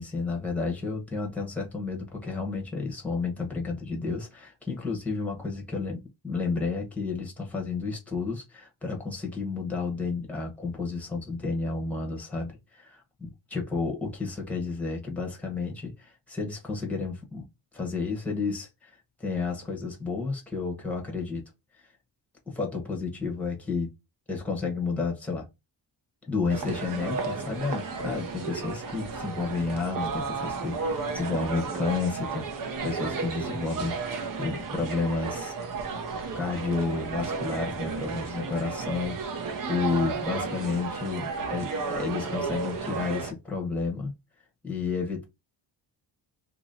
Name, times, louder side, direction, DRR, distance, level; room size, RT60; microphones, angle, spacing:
voice 1, 0.0-17.4 17.7-21.4 22.5-23.9 24.3-25.5 26.2-32.4 32.8-35.6 36.3-44.1 44.6-45.2, left 4 dB, 5° left, 1.0 m, -31 dB
sound 1, 26.5-43.3, right 4 dB, 45° right, 0.7 m, -33 dB
2.8 x 2.8 x 3.9 m
wide cardioid pair, 170°, 46 cm